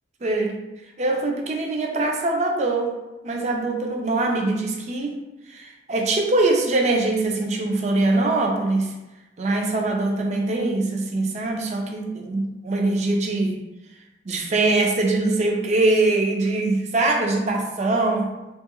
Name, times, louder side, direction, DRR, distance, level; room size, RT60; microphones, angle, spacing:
voice 1, 0.2-0.6 1.0-3.0 3.2-5.1 5.5-8.9 9.4-13.6 14.3-18.3, right 2 dB, 40° right, 1 dB, 0.4 m, -22 dB
3.0 x 2.4 x 2.9 m, 1.1 s
head